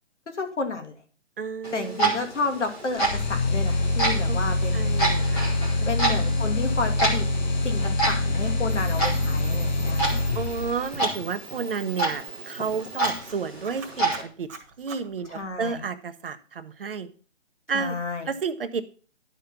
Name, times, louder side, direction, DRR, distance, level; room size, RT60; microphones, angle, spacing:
voice 1, 0.3-0.9 1.7-4.9 5.9-7.3 7.6-10.2 15.3-15.8 17.7-18.3, left 4 dB, 70° left, 5 dB, 2.6 m, -31 dB
voice 2, 1.4-2.1 4.3-5.9 10.3-14.5 14.8-17.1 17.7-17.9 18.3-18.8, right 5 dB, 50° right, 10 dB, 0.9 m, -32 dB
Clock, 1.6-14.2, right 2 dB, 5° left, 0.8 m, -30 dB
sound 1, 3.0-11.0, left 2 dB, 40° left, 0.8 m, -25 dB
Camera, 8.7-15.8, right 6 dB, 15° right, 1.6 m, -44 dB
11.5 x 5.3 x 5.8 m, 0.39 s
hypercardioid pair, 160°, 36 cm